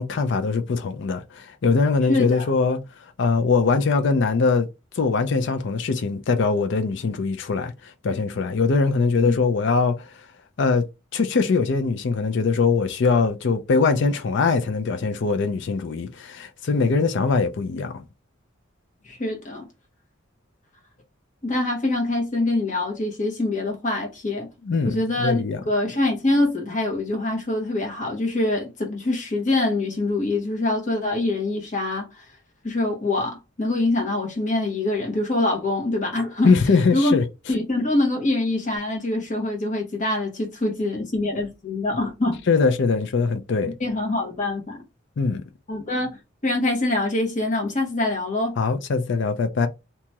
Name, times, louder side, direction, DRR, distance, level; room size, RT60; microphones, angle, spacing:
voice 1, 0.0-2.8 3.2-4.7 5.0-7.7 8.0-10.1 10.6-10.8 11.1-18.0 24.6-25.6 36.4-37.2 42.5-43.7 45.2-45.4 48.6-49.7, left 4 dB, 60° left, 0.4 m, -22 dB
voice 2, 2.1-2.5 9.2-9.4 19.0-19.6 21.4-24.5 24.8-25.4 25.7-32.2 32.6-36.5 36.9-37.1 37.5-42.4 43.8-44.8 45.7-48.6, left 2 dB, 40° left, 1.1 m, -24 dB
2.8 x 2.3 x 2.8 m
head